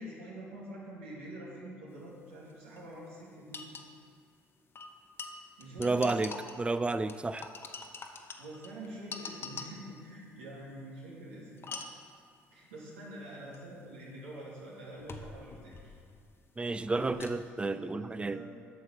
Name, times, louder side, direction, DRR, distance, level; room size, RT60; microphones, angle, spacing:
voice 1, 0.0-3.6 5.6-6.2 8.4-11.6 12.5-15.9 16.9-18.4, equal, 85° right, -5 dB, 2.2 m, -46 dB
sound 1, 2.5-2.6 2.8-2.9 3.5-3.9 4.7-6.7 7.1-10.0 11.6-12.1 13.5-13.6 15.0-16.3 16.6-17.5, left 4 dB, 40° left, 1.0 m, -44 dB
voice 2, 5.8-7.5 16.6-18.4, right 3 dB, 15° right, 13 dB, 0.4 m, -31 dB
9.1 x 6.3 x 5.6 m, 2.3 s
hypercardioid pair, 60°, 6 cm